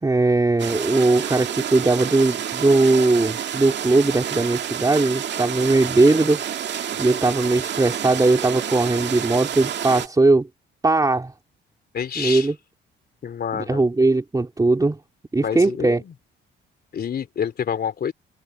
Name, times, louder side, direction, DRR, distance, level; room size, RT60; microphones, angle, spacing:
voice 1, 0.0-6.4 7.0-10.5 10.8-11.3 12.2-12.5 13.5-15.0 15.3-16.0, right 2 dB, 20° right, 3.0 m, -19 dB
sound 1, 0.6-10.1, right 9 dB, 60° right, 2.0 m, -29 dB
voice 2, 11.9-12.5 13.2-13.9 15.4-16.1 16.9-18.1, left 7 dB, 50° left, 3.5 m, -28 dB
cardioid pair, 90°, 20 cm